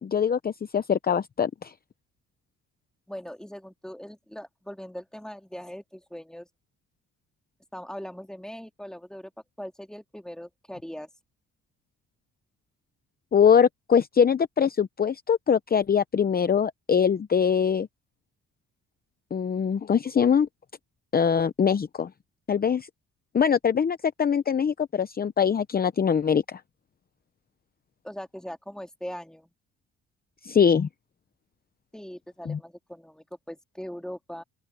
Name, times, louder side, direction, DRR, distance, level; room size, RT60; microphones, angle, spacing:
voice 1, 0.0-1.7 13.3-17.9 19.3-20.5 21.1-22.1 22.5-22.9 23.3-26.6 30.4-30.9 32.5-32.6, left 7 dB, 30° left, 0.7 m, -23 dB
voice 2, 3.1-6.5 7.7-9.3 9.6-11.1 28.0-29.5 31.9-34.4, equal, ahead, 2.4 m, -40 dB
open air
cardioid pair, 90°, 30 cm